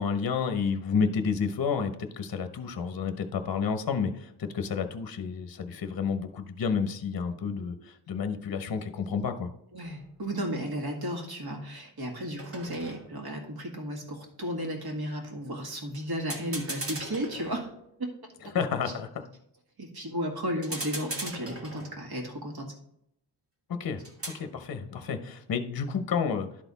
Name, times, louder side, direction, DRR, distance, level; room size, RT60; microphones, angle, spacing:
voice 1, 0.0-9.5 18.5-19.2 23.7-26.5, left 6 dB, 50° left, 8 dB, 0.8 m, -30 dB
voice 2, 9.7-17.7 18.0-18.1 19.8-22.7, equal, 50° right, 1 dB, 2.0 m, -34 dB
sound 1, 9.8-10.1 12.4-13.4 15.9-16.0 16.3-18.0 20.6-22.2 24.0-24.5, right 2 dB, 30° right, 1.4 m, -39 dB
11.5 x 4.1 x 4.0 m, 0.74 s
wide cardioid pair, 110°, 47 cm